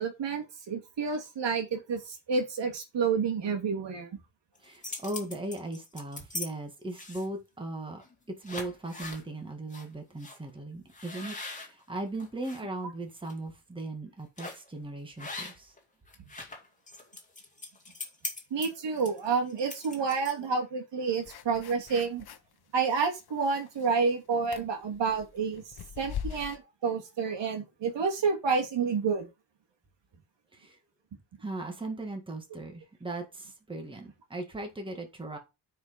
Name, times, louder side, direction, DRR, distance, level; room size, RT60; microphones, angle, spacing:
voice 1, 0.0-4.1 18.5-22.2 22.7-29.3, right 5 dB, 70° right, 2.5 m, -29 dB
sound 1, 4.5-6.5 6.9-7.4 8.0-8.1 8.4-9.2 9.7-9.8 10.2-10.4 10.9-12.6 13.1-13.3 14.4-14.7 15.2-15.8 16.1-20.5, left 2 dB, 15° left, 2.2 m, -41 dB
voice 2, 4.6-8.0 8.4-15.7 30.5-30.8 31.4-35.4, right 2 dB, 10° right, 1.8 m, -38 dB
sound 2, 21.2-22.5 22.9-24.0 24.4-26.6, left 8 dB, 55° left, 1.1 m, -41 dB
9.5 x 5.0 x 5.1 m
wide cardioid pair, 165°, 45 cm